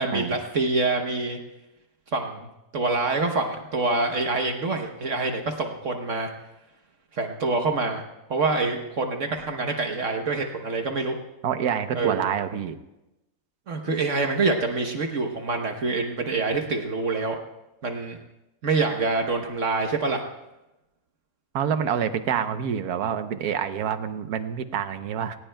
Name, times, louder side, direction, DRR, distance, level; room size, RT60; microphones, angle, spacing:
voice 1, 0.0-1.4 2.1-2.5 2.7-6.3 7.1-8.0 8.3-11.1 11.9-12.3 13.7-17.4 17.8-18.2 18.6-20.2, right 3 dB, 60° right, 4 dB, 1.3 m, -26 dB
voice 2, 11.4-12.8 21.5-25.4, right 8 dB, 80° right, 10 dB, 1.3 m, -27 dB
20.0 x 19.0 x 2.2 m, 0.96 s
omnidirectional pair, 1.6 m